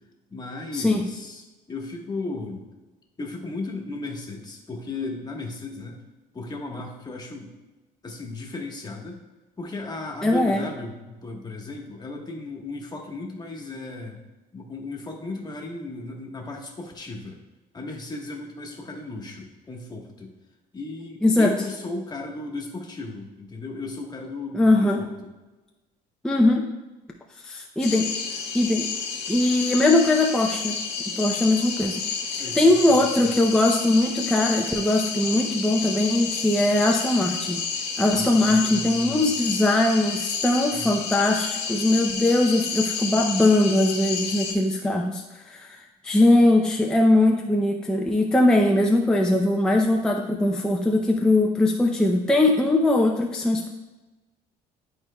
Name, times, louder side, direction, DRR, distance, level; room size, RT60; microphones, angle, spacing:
voice 1, 0.3-2.7 3.2-6.0 6.3-7.5 8.0-9.2 9.6-14.2 14.5-17.4 17.7-20.3 20.7-25.1 32.4-33.3 38.1-39.3 40.7-41.0, left 2 dB, 25° left, 0 dB, 1.2 m, -35 dB
voice 2, 10.2-10.7 21.2-21.5 24.5-25.0 26.2-26.7 27.4-28.1 28.5-28.9 29.3-30.8 31.1-32.0 32.6-37.6 38.0-45.8 46.0-53.7, left 2 dB, 5° left, 0 dB, 0.5 m, -21 dB
sound 1, 27.8-44.5, left 5 dB, 80° left, 1.3 m, -30 dB
10.5 x 4.4 x 2.2 m, 1.1 s
cardioid pair, 110°, 17 cm